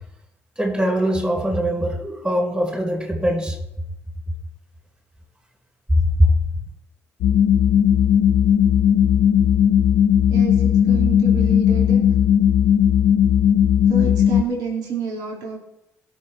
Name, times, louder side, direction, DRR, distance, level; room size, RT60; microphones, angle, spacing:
voice 1, 0.6-3.6 6.2-6.3, equal, 20° right, -2 dB, 4.6 m, -21 dB
sound 1, 7.2-14.4, left 9 dB, 75° left, 0.6 m, -16 dB
voice 2, 10.3-12.0 13.9-15.6, right 5 dB, 75° right, -2 dB, 3.0 m, -29 dB
17.5 x 6.4 x 4.5 m, 0.83 s
supercardioid pair, 60°, 7 cm